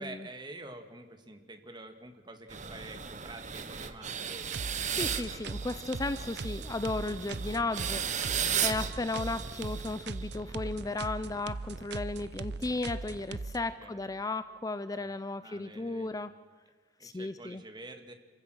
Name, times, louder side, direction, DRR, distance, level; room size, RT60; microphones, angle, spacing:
voice 1, 0.0-5.2 8.5-8.9 13.6-14.2 14.9-16.2 17.0-18.1, right 2 dB, 25° right, 6 dB, 1.9 m, -48 dB
sound 1, 2.5-10.5, right 8 dB, 45° right, 1.2 m, -36 dB
sound 2, 4.4-13.6, right 3 dB, 70° right, 0.7 m, -40 dB
voice 2, 4.9-16.3 17.0-17.6, left 2 dB, 20° left, 13 dB, 0.5 m, -35 dB
27.5 x 15.5 x 6.3 m, 1.5 s
head